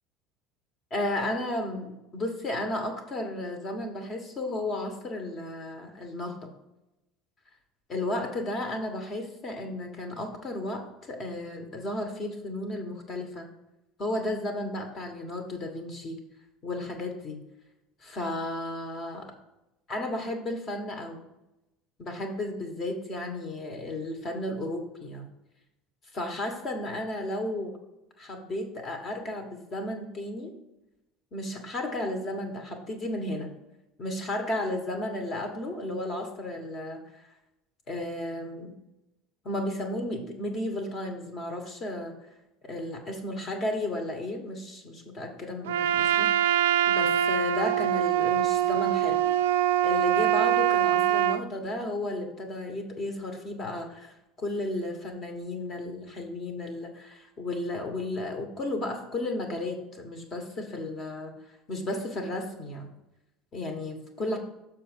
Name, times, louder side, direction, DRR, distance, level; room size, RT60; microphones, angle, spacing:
voice 1, 0.9-6.5 7.9-13.5 14.0-16.2 16.6-17.4 18.0-19.3 19.9-21.2 22.0-25.3 26.1-27.8 28.2-30.5 31.3-33.5 34.0-37.0 37.9-38.7 39.4-42.1 42.6-49.2 49.8-61.3 61.7-62.9 63.5-64.4, left 1 dB, 40° left, 4 dB, 1.6 m, -33 dB
Trumpet, 45.7-51.4, right 11 dB, 75° right, 0.3 m, -24 dB
6.8 x 4.7 x 5.4 m, 0.93 s
hypercardioid pair, 70°, 0 cm